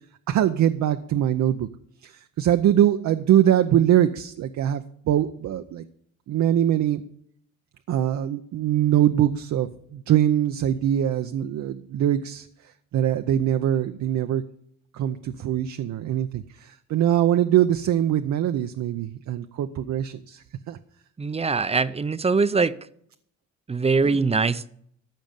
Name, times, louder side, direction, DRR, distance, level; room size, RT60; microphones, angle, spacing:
voice 1, 0.3-1.7 2.0-5.8 6.3-7.0 7.9-12.5 12.9-14.4 14.9-20.8 24.0-24.2, right 11 dB, 70° right, 8 dB, 0.7 m, -23 dB
voice 2, 21.2-22.7 23.7-24.7, right 4 dB, 20° right, 15 dB, 0.6 m, -22 dB
14.5 x 5.3 x 8.9 m, 0.69 s
cardioid pair, 90°, 30 cm